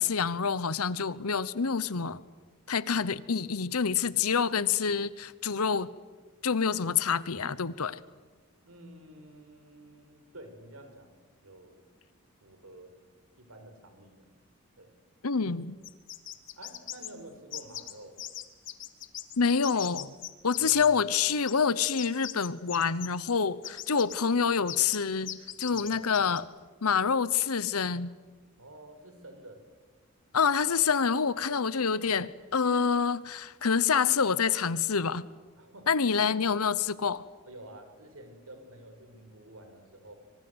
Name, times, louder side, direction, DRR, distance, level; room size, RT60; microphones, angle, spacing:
voice 1, 0.0-2.2 2.7-5.9 6.4-8.0 15.2-15.8 19.4-20.1 20.4-26.5 26.8-28.1 30.3-35.3 35.9-37.3, left 6 dB, 80° left, 18 dB, 0.9 m, -27 dB
voice 2, 8.6-11.9 12.4-12.9 13.4-14.3 14.8-14.9 16.6-18.2 20.6-21.0 25.7-25.9 28.6-29.6 35.6-35.9 36.1-36.3 37.4-40.1, right 1 dB, 75° right, 7 dB, 5.1 m, -50 dB
sound 1, 15.8-17.1 17.5-17.9 18.2-19.4 19.6-20.9 21.3-23.3 23.6-24.2 24.7-25.0 25.2-26.4, left 12 dB, 55° left, 1.7 m, -39 dB
25.5 x 24.0 x 8.0 m, 1.4 s
head